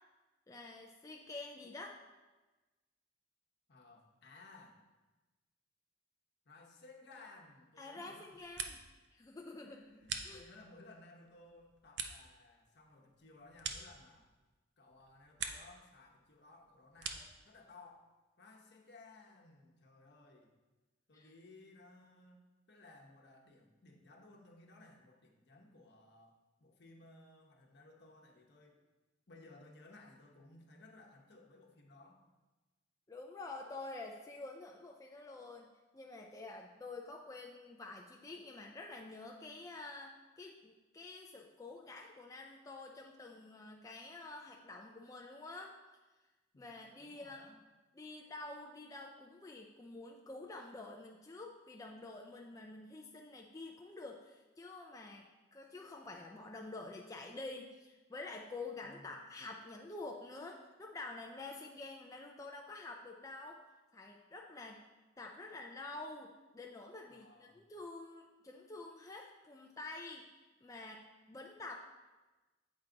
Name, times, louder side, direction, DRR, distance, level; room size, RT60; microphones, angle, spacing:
voice 1, 0.5-2.0 7.8-8.8 9.1-9.8 10.2-10.4 21.1-21.3 33.1-45.7 46.6-47.5 47.9-55.3 55.5-63.6 63.9-64.8 65.2-70.3 70.6-71.9, left 2 dB, 15° left, 0 dB, 0.4 m, -48 dB
voice 2, 3.7-4.8 6.4-8.8 9.6-14.3 14.8-20.6 21.1-22.4 22.7-28.8 29.3-32.2 46.5-47.6 58.8-59.3 67.1-67.6, left 2 dB, 60° left, 1 dB, 1.0 m, -59 dB
sound 1, 8.2-9.1 9.4-10.8 11.3-14.5 14.9-15.8 16.1-17.4, right 6 dB, 60° right, 0.6 m, -45 dB
8.1 x 4.7 x 3.9 m, 1.2 s
head